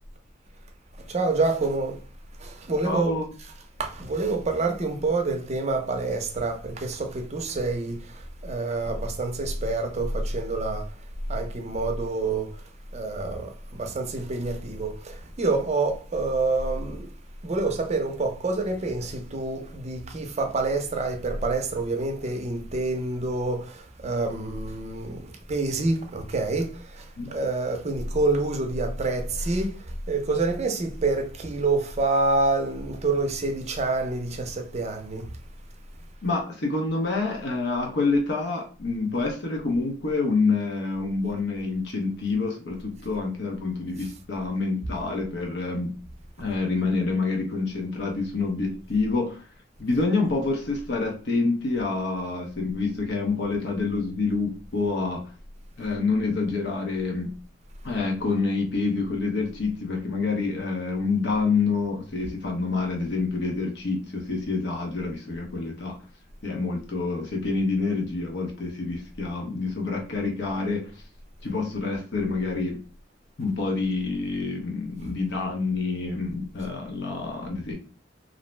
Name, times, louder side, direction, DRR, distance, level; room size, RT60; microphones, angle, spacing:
voice 1, 1.1-2.0 2.4-3.1 3.4-3.5 3.8-10.9 11.3-12.6 12.9-17.1 17.4-35.3, right 3 dB, 35° right, 0.5 m, -27 dB
voice 2, 2.8-3.2 27.2-27.3 36.2-45.9 46.4-49.4 49.8-55.2 55.8-57.3 57.8-66.0 66.4-70.9 71.4-72.8 73.4-77.7, left 3 dB, 65° left, 0.7 m, -27 dB
2.5 x 2.0 x 3.1 m
head